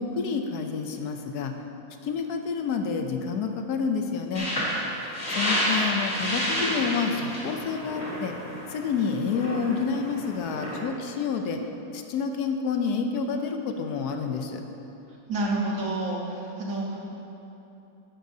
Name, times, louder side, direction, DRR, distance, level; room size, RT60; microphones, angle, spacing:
voice 1, 0.0-1.5 2.0-4.5 5.3-8.3 8.7-11.6 11.9-14.6, left 5 dB, 75° left, 5 dB, 1.2 m, -29 dB
sound 1, 4.3-10.8, equal, 30° left, 2.6 m, -30 dB
voice 2, 5.3-5.8 15.3-17.1, right 2 dB, 55° right, -2 dB, 1.5 m, -30 dB
11.5 x 10.0 x 2.7 m, 3.0 s
omnidirectional pair, 1.7 m